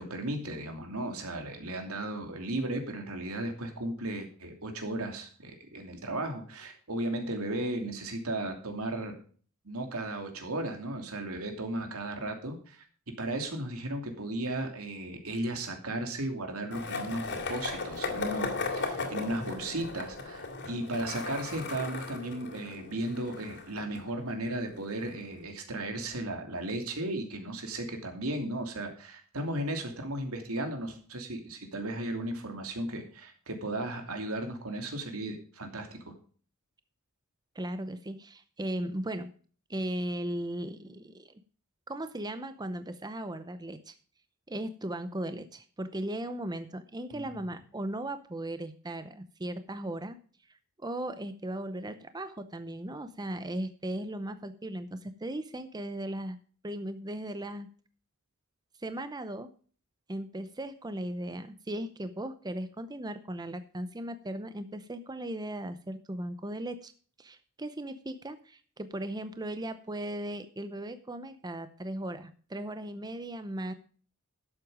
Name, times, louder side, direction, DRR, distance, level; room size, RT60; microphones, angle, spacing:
voice 1, 0.0-9.2 9.6-12.8 13.2-36.1 47.1-47.2, right 1 dB, 85° right, 4 dB, 2.8 m, -35 dB
Skateboard, 16.7-24.6, left 3 dB, 55° left, 2.8 m, -37 dB
voice 2, 37.5-39.3 39.7-41.4 41.9-44.0 44.5-50.2 50.8-56.4 56.6-57.7 58.8-59.5 60.1-66.9 67.2-73.7, right 1 dB, 20° right, 11 dB, 0.7 m, -37 dB
12.0 x 7.9 x 5.0 m, 0.43 s
head